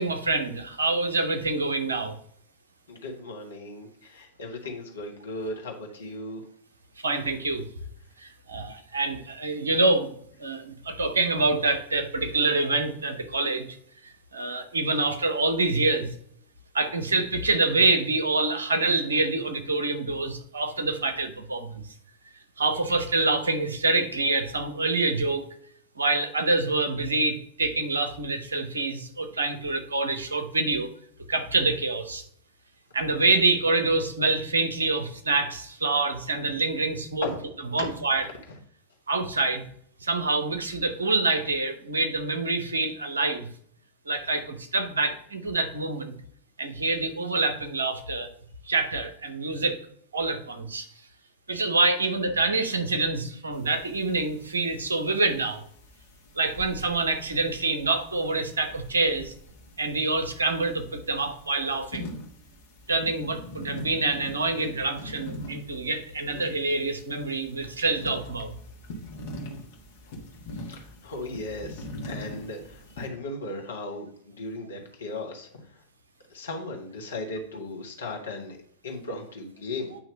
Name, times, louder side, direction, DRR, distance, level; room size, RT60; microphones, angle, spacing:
voice 1, 0.0-2.2 7.0-7.7 8.2-10.1 10.4-13.8 14.0-16.1 16.7-21.8 22.6-25.5 26.0-30.9 31.3-32.2 32.9-37.3 37.7-38.3 39.1-39.6 40.0-43.5 44.1-46.2 46.6-48.3 48.6-49.8 50.1-50.9 51.5-55.6 56.4-59.3 59.8-62.1 62.9-68.5, right 3 dB, 70° right, 7 dB, 0.9 m, -26 dB
voice 2, 2.9-6.4 37.2-37.4 37.8-37.9 70.5-75.5 76.3-78.6 78.8-80.0, left 2 dB, 70° left, 1 dB, 1.5 m, -36 dB
sound 1, 53.5-73.1, left 1 dB, 50° left, 1.4 m, -43 dB
8.7 x 2.9 x 5.2 m, 0.63 s
figure-of-eight pair, 90°, 0 cm